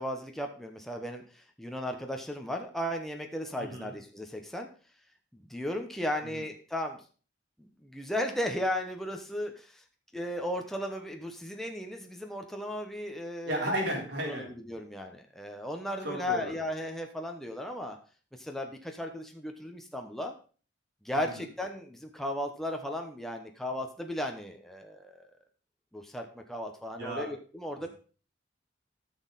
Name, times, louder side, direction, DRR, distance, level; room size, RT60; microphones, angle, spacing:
voice 1, 0.0-4.7 5.3-7.0 7.6-9.8 10.1-13.7 14.2-18.0 18.4-20.3 21.0-25.3 25.9-27.9, left 1 dB, ahead, 2 dB, 0.9 m, -35 dB
voice 2, 3.6-3.9 6.3-6.4 13.4-14.5 16.0-16.5 27.0-27.3 27.8-27.9, equal, 65° right, -1 dB, 3.8 m, -33 dB
14.0 x 6.4 x 4.0 m, 0.39 s
head